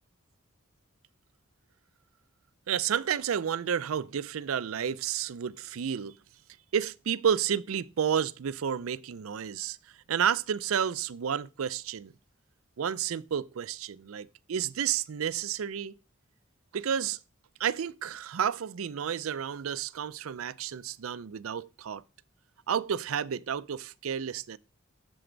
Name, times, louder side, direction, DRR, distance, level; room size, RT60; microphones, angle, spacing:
voice 1, 2.7-6.2 6.7-9.8 10.1-12.1 12.8-15.9 16.7-17.2 17.6-22.0 22.7-24.6, right 8 dB, 85° right, 0.4 m, -31 dB
7.8 x 7.1 x 3.8 m
head